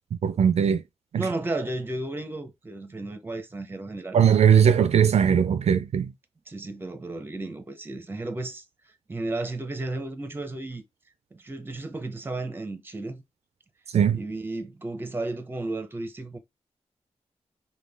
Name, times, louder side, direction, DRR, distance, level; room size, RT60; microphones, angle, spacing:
voice 1, 0.2-0.8 1.1-1.3 4.1-6.1 13.9-14.2, right 8 dB, 70° right, 0.4 m, -19 dB
voice 2, 1.2-4.2 6.5-8.6 9.1-10.8 11.3-13.2 14.1-16.4, right 2 dB, 20° right, 0.7 m, -33 dB
5.2 x 2.2 x 3.4 m
wide cardioid pair, 175°, 11 cm